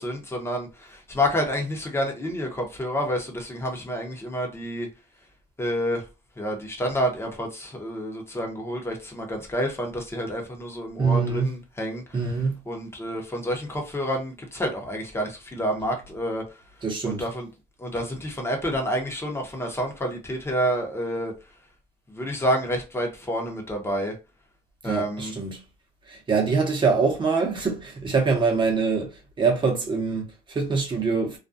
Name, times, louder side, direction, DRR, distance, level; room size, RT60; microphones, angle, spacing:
voice 1, 0.0-4.9 5.6-6.0 6.4-12.0 12.7-16.4 17.0-17.5 17.8-21.3 22.1-24.1 24.8-25.3, equal, 15° left, 0.9 m, -29 dB
voice 2, 11.0-11.5 12.1-12.6 16.8-17.3 24.8-25.6 26.1-31.4, right 4 dB, 30° right, 0.9 m, -24 dB
2.4 x 2.2 x 2.6 m
cardioid pair, 110°, 17 cm